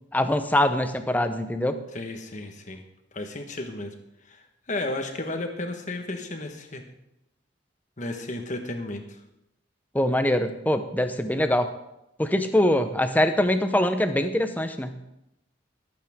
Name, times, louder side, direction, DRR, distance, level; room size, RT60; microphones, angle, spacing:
voice 1, 0.1-1.8 9.9-11.7 12.2-15.0, left 1 dB, 10° left, 8 dB, 0.7 m, -23 dB
voice 2, 1.9-2.8 3.1-3.9 4.3-4.4 4.7-6.8 8.0-9.2, left 2 dB, 40° left, 5 dB, 1.4 m, -33 dB
20.5 x 8.7 x 3.7 m, 0.88 s
head